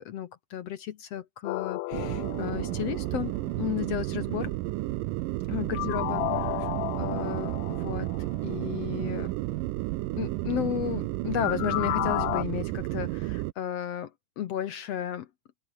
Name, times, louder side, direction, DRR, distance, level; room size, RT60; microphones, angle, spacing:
voice 1, 0.0-4.5 5.5-6.7 7.0-9.3 10.2-14.1 14.4-15.3, left 10 dB, 65° left, 1.7 m, -33 dB
sound 1, 1.5-3.5 5.7-8.4 11.4-12.4, left 20 dB, 80° left, 2.2 m, -33 dB
sound 2, 1.9-13.5, right 19 dB, 90° right, 2.3 m, -32 dB
omnidirectional pair, 3.9 m